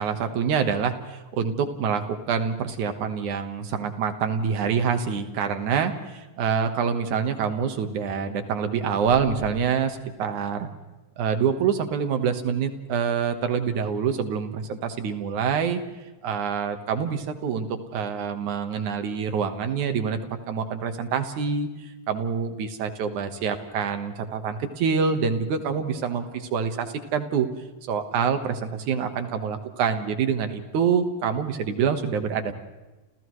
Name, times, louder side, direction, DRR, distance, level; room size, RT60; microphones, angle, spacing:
voice 1, 0.0-10.7 11.2-15.8 16.2-17.7 17.9-20.2 20.5-27.5 27.9-32.5, right 6 dB, 65° right, 7 dB, 2.7 m, -26 dB
sound 1, 9.0-9.6, left 7 dB, 75° left, 2.6 m, -38 dB
29.5 x 29.0 x 3.2 m, 1.1 s
omnidirectional pair, 3.9 m